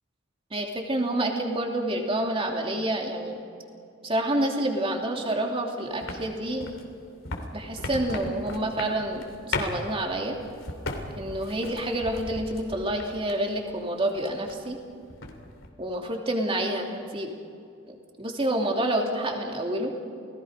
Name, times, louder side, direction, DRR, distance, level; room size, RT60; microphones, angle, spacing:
voice 1, 0.5-3.4 4.0-6.7 7.5-10.4 11.2-14.8 15.8-17.3 17.9-19.9, right 1 dB, 30° right, 1 dB, 2.9 m, -28 dB
sound 1, 6.0-13.6 13.9-14.8 15.0-15.7, left 3 dB, 75° left, 3.0 m, -36 dB
29.0 x 19.0 x 5.2 m, 2.5 s
head